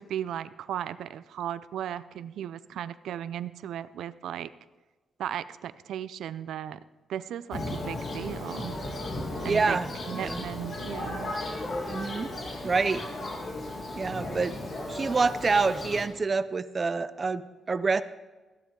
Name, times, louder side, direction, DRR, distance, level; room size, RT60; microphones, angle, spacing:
voice 1, 0.0-4.5 5.2-6.8 7.1-8.8 9.4-11.3, right 10 dB, 85° right, 15 dB, 0.4 m, -36 dB
Thunder, 7.5-16.1, left 1 dB, 45° left, 2.2 m, -35 dB
voice 2, 9.4-10.4 11.8-12.3 12.6-13.0 14.0-14.6 14.9-18.0, right 4 dB, 30° right, 14 dB, 0.5 m, -27 dB
15.0 x 10.0 x 3.8 m, 1.2 s
cardioid pair, 135°, 0 cm